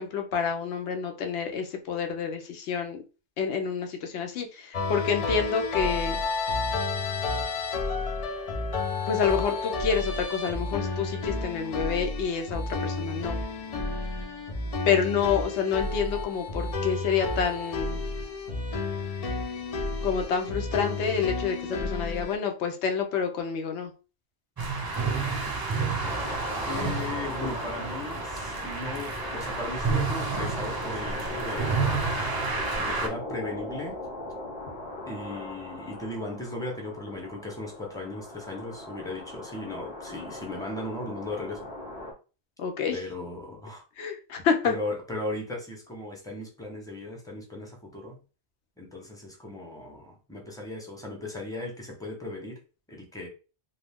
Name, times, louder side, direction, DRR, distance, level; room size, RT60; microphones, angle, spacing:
voice 1, 0.0-3.0 3.4-6.2 9.1-13.4 14.9-18.0 20.0-23.9 42.6-43.0 44.0-44.7, left 6 dB, 80° left, 4 dB, 0.9 m, -28 dB
sound 1, 4.7-22.4, left 3 dB, 55° left, 0.4 m, -31 dB
sound 2, 24.6-33.1, right 4 dB, 35° right, 0.4 m, -30 dB
sound 3, 26.0-42.1, left 1 dB, 40° left, 0.9 m, -39 dB
voice 2, 26.7-32.1 32.8-34.0 35.1-41.7 42.9-43.8 44.6-48.2 48.8-52.6 52.9-53.3, left 2 dB, 5° left, 0 dB, 0.6 m, -37 dB
2.4 x 2.3 x 3.4 m, 0.34 s
omnidirectional pair, 1.1 m